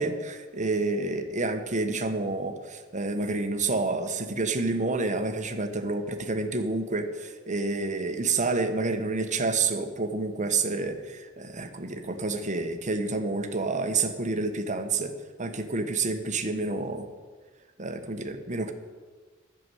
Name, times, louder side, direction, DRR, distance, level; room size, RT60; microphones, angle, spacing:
voice 1, 0.0-15.1 15.4-17.0 17.8-18.7, right 3 dB, 35° right, 6 dB, 1.1 m, -29 dB
11.5 x 6.9 x 9.1 m, 1.4 s
head